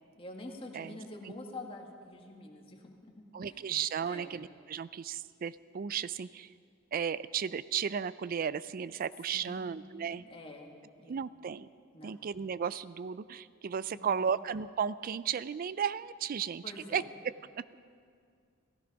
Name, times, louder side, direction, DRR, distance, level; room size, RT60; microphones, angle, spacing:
voice 1, 0.2-3.6 4.0-4.3 9.3-9.9 10.2-11.1 11.9-12.2 13.9-14.0 16.6-17.1, left 2 dB, 30° left, 1 dB, 1.7 m, -47 dB
voice 2, 3.3-6.5 6.9-10.2 11.1-11.7 12.0-16.6 16.9-17.6, right 7 dB, 45° right, 17 dB, 0.4 m, -34 dB
16.0 x 15.5 x 5.3 m, 2.2 s
head